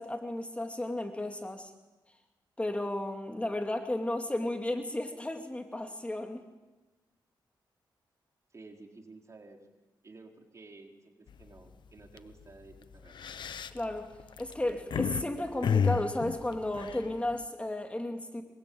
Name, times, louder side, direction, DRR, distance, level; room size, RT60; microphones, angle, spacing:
voice 1, 0.0-1.7 2.6-6.4 13.7-14.1 14.4-18.4, left 1 dB, 15° left, 4 dB, 2.6 m, -33 dB
voice 2, 8.5-9.6 10.0-13.1, right 3 dB, 40° right, 2 dB, 4.4 m, -52 dB
sound 1, 11.3-11.6 12.0-12.2 12.9-15.2 15.6-17.4, left 7 dB, 75° left, 1.0 m, -31 dB
24.5 x 23.5 x 8.8 m, 1.1 s
cardioid pair, 80°, 8 cm